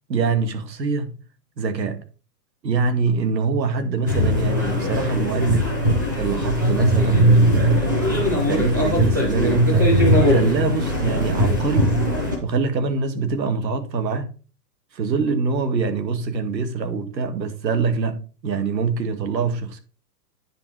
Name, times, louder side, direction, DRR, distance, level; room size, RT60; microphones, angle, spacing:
voice 1, 0.1-1.1 1.6-2.0 2.6-5.7 6.2-9.9 10.2-11.9 12.4-14.3 14.9-19.8, right 4 dB, 85° right, 1.9 m, -24 dB
sound 1, 4.1-12.4, equal, 15° right, 0.6 m, -19 dB
9.5 x 5.1 x 4.6 m
hypercardioid pair, 175°, 50 cm